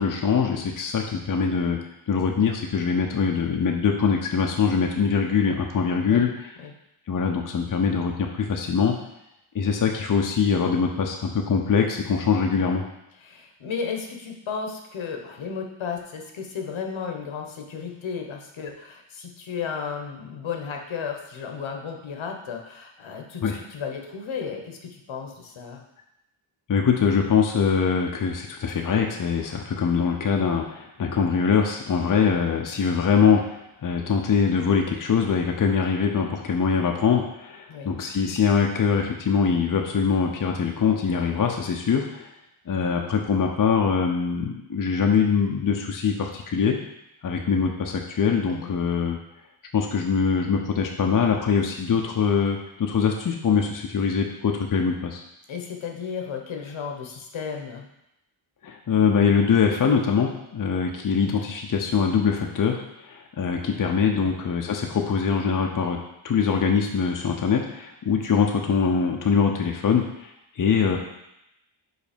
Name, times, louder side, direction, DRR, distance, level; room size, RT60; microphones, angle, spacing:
voice 1, 0.0-1.8 2.1-6.3 7.1-8.9 9.5-12.8 23.4-23.6 26.7-42.3 42.7-46.8 47.2-49.2 49.7-55.2 58.6-66.0 66.2-71.0, left 6 dB, 40° left, 1 dB, 0.7 m, -23 dB
voice 2, 13.2-25.8 37.7-37.9 48.5-48.7 55.5-57.9 64.1-64.3, left 6 dB, 70° left, 2 dB, 1.1 m, -34 dB
5.3 x 4.0 x 5.1 m, 0.85 s
wide cardioid pair, 105°, 49 cm